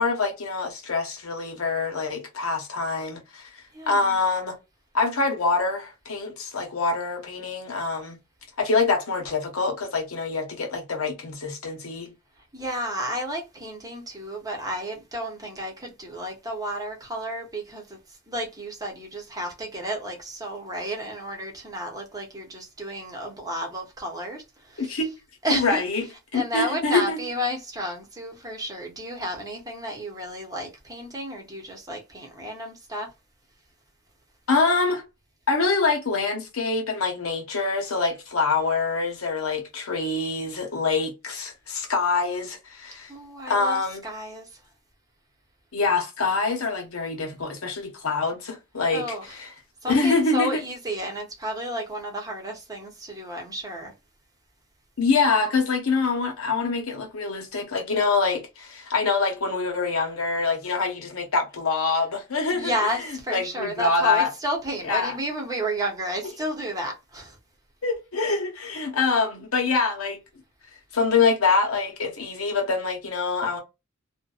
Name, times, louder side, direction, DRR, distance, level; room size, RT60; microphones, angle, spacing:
voice 1, 0.0-4.6 4.9-8.2 8.6-12.1 24.8-25.1 25.5-26.1 26.3-27.2 34.5-35.0 35.5-43.1 43.5-44.0 45.7-49.5 49.8-50.6 55.0-62.7 63.1-64.3 64.8-65.2 67.8-70.2 70.9-73.6, left 4 dB, 85° left, 0.9 m, -25 dB
voice 2, 3.7-4.2 12.5-25.1 25.4-33.1 43.1-44.6 48.9-49.4 49.8-53.9 62.5-67.4, equal, 15° right, 0.8 m, -32 dB
2.6 x 2.2 x 2.3 m
head